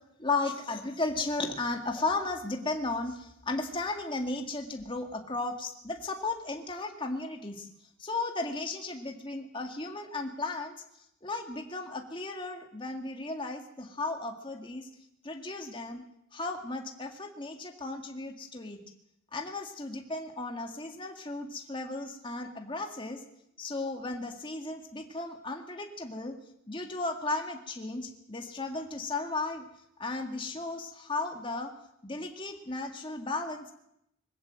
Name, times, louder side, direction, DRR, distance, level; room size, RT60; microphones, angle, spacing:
voice 1, 0.2-7.7 8.0-10.8 11.2-14.9 15.2-16.0 16.3-18.8 19.3-23.2 23.6-26.4 26.7-29.6 30.0-31.7 32.0-33.7, left 3 dB, 25° left, 3 dB, 2.0 m, -35 dB
21.0 x 16.0 x 7.6 m, 0.77 s
head